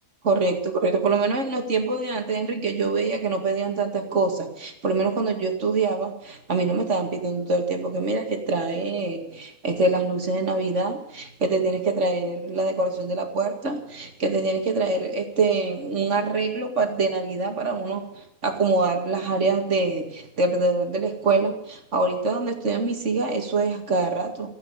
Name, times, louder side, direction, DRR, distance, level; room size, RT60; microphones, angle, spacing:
voice 1, 0.2-24.5, right 3 dB, 50° right, 5 dB, 2.5 m, -25 dB
16.0 x 8.8 x 9.8 m, 0.75 s
omnidirectional pair, 1.6 m